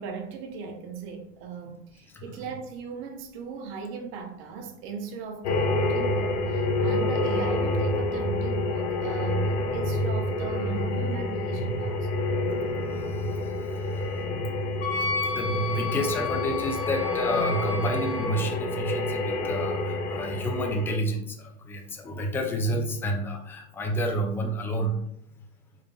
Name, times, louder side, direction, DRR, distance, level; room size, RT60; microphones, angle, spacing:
voice 1, 0.0-12.1, right 5 dB, 40° right, 0.7 m, -38 dB
sound 1, 5.4-20.9, left 2 dB, 80° left, 0.7 m, -28 dB
voice 2, 12.9-24.9, equal, 5° left, 0.3 m, -30 dB
Wind instrument woodwind instrument, 14.8-18.4, left 3 dB, 60° left, 1.1 m, -32 dB
4.8 x 3.3 x 2.3 m
hypercardioid pair, 125°, 33 cm